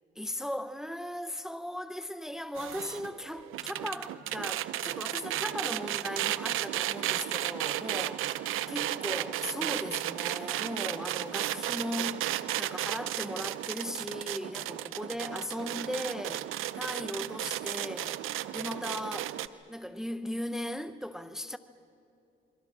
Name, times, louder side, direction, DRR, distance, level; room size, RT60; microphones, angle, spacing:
voice 1, 0.2-12.3 12.6-16.5 16.7-18.2 18.5-19.3 19.7-21.6, left 1 dB, ahead, 0.9 m, -37 dB
sound 1, 2.6-19.5, right 13 dB, 85° right, 0.7 m, -34 dB
28.5 x 23.0 x 6.1 m
supercardioid pair, 60°, 20 cm